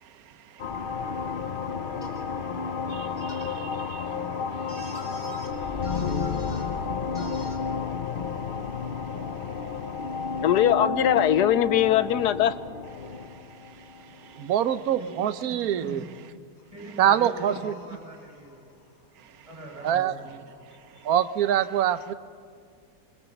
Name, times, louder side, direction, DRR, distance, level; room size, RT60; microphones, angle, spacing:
sound 1, 0.6-14.7, left 5 dB, 45° left, 0.7 m, -31 dB
sound 2, 2.0-2.2 3.2-3.5 4.7-5.5 5.8-6.7 7.1-7.6, equal, 20° left, 2.9 m, -44 dB
voice 1, 2.9-4.1 4.7-5.0 14.3-16.0 17.0-17.7 19.8-20.1 21.0-22.1, right 10 dB, 65° right, 1.3 m, -25 dB
voice 2, 10.4-12.5, left 10 dB, 75° left, 1.4 m, -21 dB
voice 3, 15.8-16.1 16.7-18.6 19.5-20.4, right 1 dB, 20° right, 6.4 m, -42 dB
27.0 x 20.5 x 7.1 m
omnidirectional pair, 1.8 m